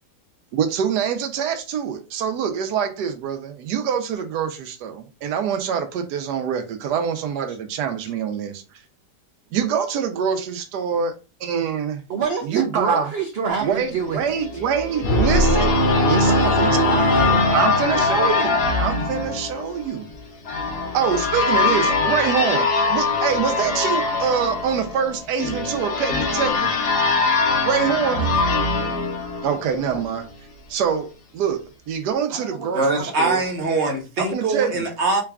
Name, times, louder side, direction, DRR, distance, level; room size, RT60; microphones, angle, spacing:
voice 1, 0.5-8.6 9.5-11.1 11.4-12.0 12.4-13.1 13.6-17.1 17.5-20.0 20.9-26.8 27.6-28.3 29.4-30.3 30.7-31.1 31.3-33.4 34.2-34.9, right 7 dB, 85° right, 1.2 m, -25 dB
voice 2, 12.1-14.4 16.2-17.5 17.8-18.3 28.1-28.3 29.9-30.0 32.3-32.7 33.0-33.5, right 5 dB, 70° right, 0.6 m, -28 dB
sound 1, 14.4-30.1, left 4 dB, 75° left, 1.6 m, -23 dB
sound 2, 15.0-18.4, equal, 50° left, 0.8 m, -20 dB
voice 3, 32.7-35.2, right 3 dB, 50° right, 1.0 m, -22 dB
3.9 x 2.3 x 3.4 m
omnidirectional pair, 1.7 m